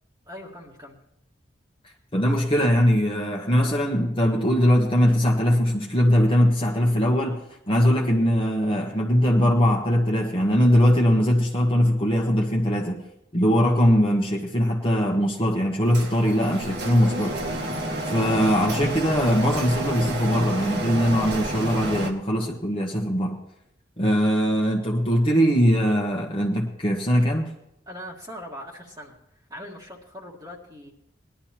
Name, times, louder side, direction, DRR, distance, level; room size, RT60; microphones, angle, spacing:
voice 1, 0.3-1.0 27.9-29.2 29.5-30.9, equal, 20° right, -3 dB, 1.7 m, -40 dB
voice 2, 2.1-7.4 7.7-13.0 13.3-17.6 18.1-23.4 24.0-27.5, equal, 25° left, -1 dB, 1.3 m, -21 dB
Printer, 15.9-22.1, right 1 dB, 55° right, 1.6 m, -30 dB
20.0 x 11.5 x 3.0 m, 0.83 s
head